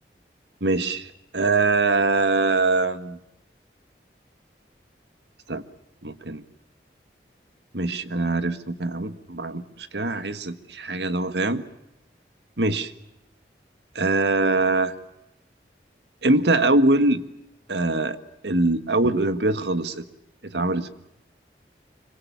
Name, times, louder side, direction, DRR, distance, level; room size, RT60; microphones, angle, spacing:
voice 1, 0.6-3.2 5.5-5.6 6.0-6.4 7.7-11.7 12.6-12.9 14.0-14.9 16.2-17.2 17.7-18.2 18.4-20.1 20.5-20.9, right 2 dB, 80° right, 10 dB, 1.7 m, -23 dB
26.0 x 25.5 x 7.0 m, 0.84 s
head